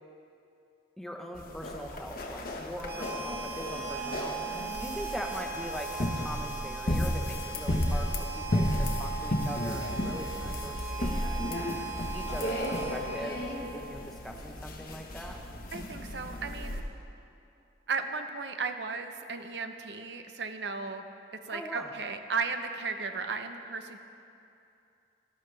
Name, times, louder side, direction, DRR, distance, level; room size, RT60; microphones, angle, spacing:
voice 1, 1.0-11.6 12.1-15.4 21.5-21.9, equal, ahead, 1 dB, 0.8 m, -41 dB
sound 1, 1.4-16.8, left 1 dB, 50° left, 1.1 m, -34 dB
Harmonica, 2.8-13.9, right 5 dB, 25° right, 2.4 m, -39 dB
voice 2, 4.6-4.9 15.7-16.8 17.9-21.0 21.4-24.0, right 4 dB, 70° right, 7 dB, 0.7 m, -35 dB
19.0 x 12.0 x 3.3 m, 2.7 s
head